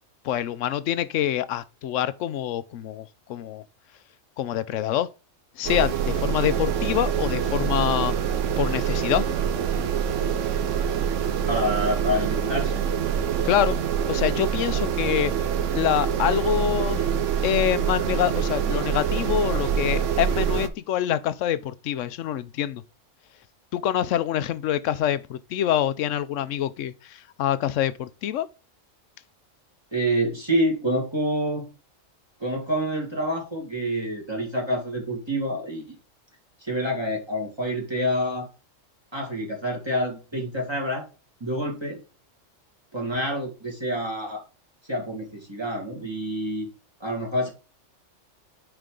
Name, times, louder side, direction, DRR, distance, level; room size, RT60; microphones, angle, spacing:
voice 1, 0.2-3.6 4.4-5.1 5.6-8.1 8.6-9.2 13.4-13.8 14.1-15.3 15.7-17.1 17.4-22.8 23.7-28.5, left 11 dB, 80° left, 1.0 m, -26 dB
sound 1, 5.6-20.7, right 8 dB, 75° right, 1.1 m, -25 dB
voice 2, 11.5-12.9 29.9-31.7 32.4-36.0 36.6-38.5 39.1-41.1 41.4-42.0 42.9-44.4 44.9-46.7 47.0-47.5, equal, 20° right, 2.2 m, -27 dB
9.6 x 4.5 x 3.8 m
omnidirectional pair, 1.3 m